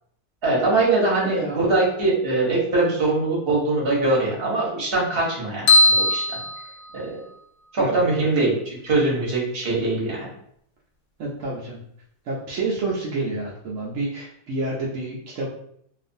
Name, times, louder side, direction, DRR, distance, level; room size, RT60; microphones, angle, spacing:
voice 1, 0.4-6.4 6.9-7.1 7.7-10.3, right 2 dB, 45° right, -4 dB, 0.9 m, -22 dB
voice 2, 1.2-1.6 7.8-8.0 11.2-11.8 12.3-15.5, right 2 dB, 70° right, -4 dB, 0.7 m, -29 dB
sound 1, 5.7-7.4, left 2 dB, 65° left, 0.8 m, -19 dB
2.4 x 2.4 x 2.6 m, 0.69 s
omnidirectional pair, 1.7 m